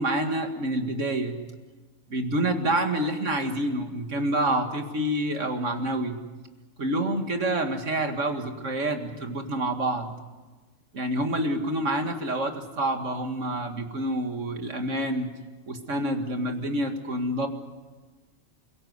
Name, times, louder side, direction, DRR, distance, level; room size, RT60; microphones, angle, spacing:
voice 1, 0.0-1.4 2.1-6.2 6.8-10.1 10.9-15.3 15.7-17.5, right 1 dB, 65° right, 5 dB, 2.4 m, -27 dB
29.5 x 17.0 x 8.0 m, 1.3 s
omnidirectional pair, 1.4 m